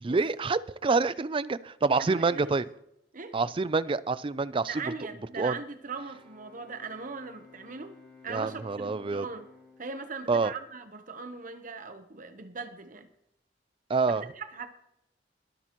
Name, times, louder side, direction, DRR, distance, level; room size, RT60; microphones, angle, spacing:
voice 1, 0.0-2.6 3.3-4.7 5.4-5.6 8.3-9.3 10.3-10.5 13.9-14.2, right 4 dB, 30° right, 0.4 m, -27 dB
voice 2, 2.0-2.6 3.1-3.4 4.7-7.9 8.2-9.5 9.8-13.1 14.2-14.7, right 4 dB, 50° right, 1.0 m, -40 dB
Bowed string instrument, 5.8-11.4, left 4 dB, 5° left, 5.6 m, -56 dB
21.5 x 10.0 x 3.1 m
head